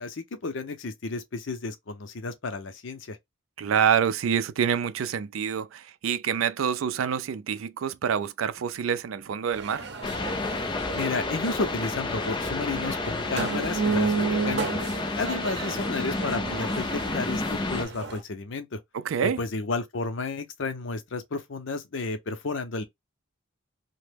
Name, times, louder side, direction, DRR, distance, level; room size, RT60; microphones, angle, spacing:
voice 1, 0.0-3.2 10.9-14.8 15.1-18.8 19.2-22.8, left 3 dB, 65° left, 0.6 m, -32 dB
voice 2, 3.6-9.9 19.0-19.4, right 7 dB, 80° right, 0.4 m, -26 dB
sound 1, 9.5-18.2, right 4 dB, 55° right, 0.7 m, -32 dB
sound 2, 10.0-17.8, left 3 dB, 25° left, 0.4 m, -31 dB
2.9 x 2.1 x 3.3 m
head